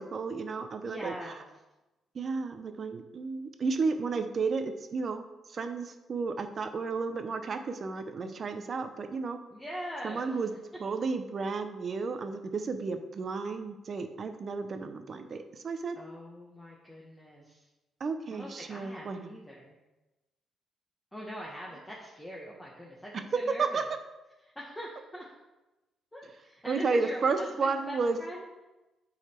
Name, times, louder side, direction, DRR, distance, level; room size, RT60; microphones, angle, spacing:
voice 1, 0.0-1.1 2.1-5.2 5.5-9.4 10.0-10.5 10.8-16.0 18.0-19.2 23.6-23.8 26.7-28.2, right 4 dB, 45° right, 8 dB, 0.7 m, -32 dB
voice 2, 0.9-1.5 9.5-10.6 15.9-17.7 18.3-19.8 21.1-23.9 24.4-25.2 26.1-28.5, equal, 10° left, -4 dB, 1.2 m, -43 dB
8.1 x 4.1 x 4.4 m, 1.0 s
cardioid pair, 90°, 0 cm